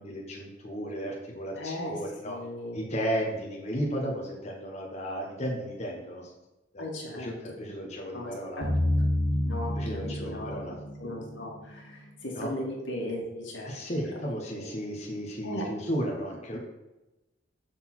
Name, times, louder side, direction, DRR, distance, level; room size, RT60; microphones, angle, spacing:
voice 1, 0.0-2.4 2.7-6.3 6.7-6.8 7.1-8.6 9.8-10.8 12.3-12.5 13.6-16.6, equal, 35° left, -1 dB, 1.0 m, -34 dB
voice 2, 1.6-2.0 2.2-2.8 6.8-7.3 8.1-8.7 9.4-10.5 11.0-13.8 14.0-14.7 15.4-15.6, left 1 dB, 80° left, -1 dB, 1.9 m, -37 dB
sound 1, 8.6-12.3, left 1 dB, 60° right, 1.7 m, -30 dB
6.6 x 3.9 x 6.0 m, 1.0 s
head